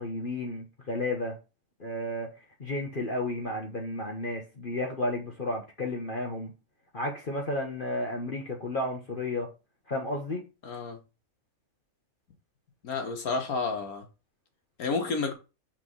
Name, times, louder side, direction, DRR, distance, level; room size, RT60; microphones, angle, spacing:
voice 1, 0.0-1.4 1.8-2.3 2.6-6.5 6.9-9.5 9.9-10.4, left 1 dB, 40° left, 1.2 m, -32 dB
voice 2, 10.6-11.0 12.8-14.0 14.8-15.3, left 4 dB, 80° left, 1.8 m, -30 dB
6.0 x 3.3 x 5.6 m
omnidirectional pair, 1.5 m